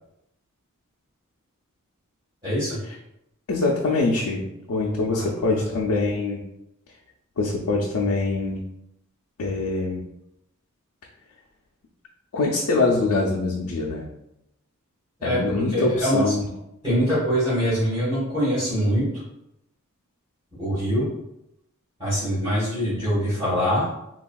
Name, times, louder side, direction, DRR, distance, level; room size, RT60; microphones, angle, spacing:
voice 1, 2.4-2.8 5.1-5.6 15.2-16.3 16.8-19.1 20.6-21.1 22.0-23.9, equal, 20° right, -14 dB, 1.3 m, -24 dB
voice 2, 3.5-6.4 7.4-8.7 9.4-10.0 12.3-14.1 15.2-16.5, left 3 dB, 85° left, -2 dB, 0.4 m, -24 dB
3.4 x 2.3 x 2.2 m, 0.83 s
head